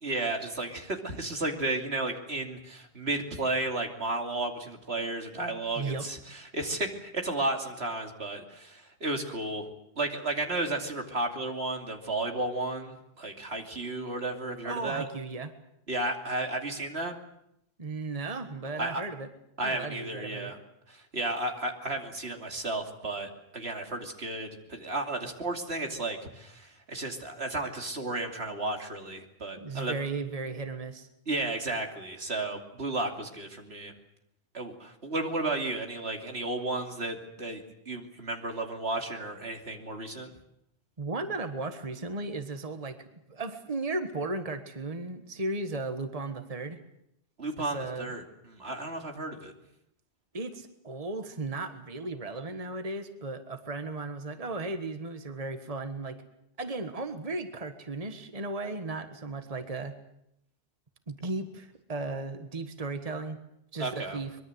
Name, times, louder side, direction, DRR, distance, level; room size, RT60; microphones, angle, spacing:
voice 1, 0.0-6.2 6.5-9.7 10.0-15.1 15.9-17.1 18.8-19.0 19.6-20.6 20.9-29.9 31.3-33.9 34.5-40.3 47.4-48.2 48.5-49.5 63.8-64.2, right 2 dB, 80° right, 3 dB, 3.1 m, -33 dB
voice 2, 14.6-15.5 17.8-19.3 19.6-20.5 29.6-31.1 41.0-46.8 47.6-48.1 50.3-56.2 56.6-59.9 61.1-63.4 63.7-64.4, right 3 dB, 35° right, 8 dB, 1.6 m, -35 dB
24.0 x 22.5 x 8.0 m, 0.78 s
omnidirectional pair, 1.1 m